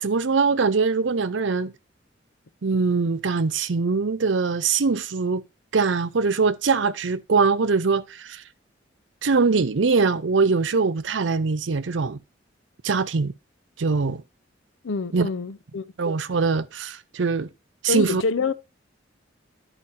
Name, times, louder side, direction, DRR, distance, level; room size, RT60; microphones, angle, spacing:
voice 1, 0.0-1.7 2.6-5.4 5.7-8.4 9.2-12.2 12.8-13.3 13.8-14.2 15.1-15.3 16.0-17.5 17.8-18.2, right 4 dB, 70° right, 0.6 m, -22 dB
voice 2, 14.8-15.8 17.9-18.5, left 4 dB, 75° left, 0.6 m, -26 dB
11.0 x 4.9 x 4.2 m
head